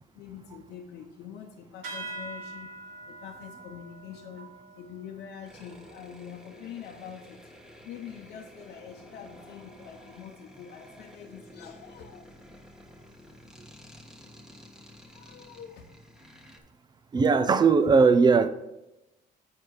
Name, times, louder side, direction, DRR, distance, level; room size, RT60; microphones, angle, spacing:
voice 1, 0.1-2.7 3.1-7.5 7.8-12.3 15.1-15.9, left 8 dB, 75° left, 0 dB, 0.8 m, -45 dB
sound 1, 1.8-6.8, right 2 dB, 85° right, 2.6 m, -44 dB
sound 2, 5.5-16.6, left 1 dB, 5° right, 1.2 m, -51 dB
voice 2, 17.1-18.5, right 5 dB, 25° right, 13 dB, 0.5 m, -19 dB
7.8 x 5.8 x 4.8 m, 0.94 s
cardioid pair, 110°, 17 cm